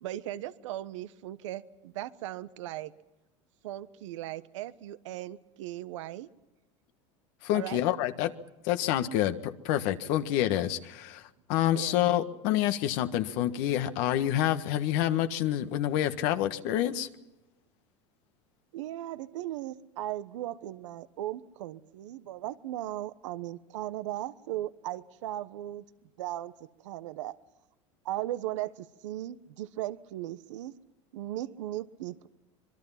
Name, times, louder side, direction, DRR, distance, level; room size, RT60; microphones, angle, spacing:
voice 1, 0.0-2.9 3.6-6.3 7.5-7.8 11.7-12.1 18.7-25.8 26.2-26.5 26.8-27.4 28.0-30.7 31.1-32.3, right 14 dB, 80° right, 14 dB, 1.1 m, -37 dB
voice 2, 7.4-8.3 8.6-17.1, left 12 dB, 65° left, 9 dB, 1.6 m, -28 dB
25.5 x 22.5 x 5.8 m, 0.99 s
supercardioid pair, 105°, 16 cm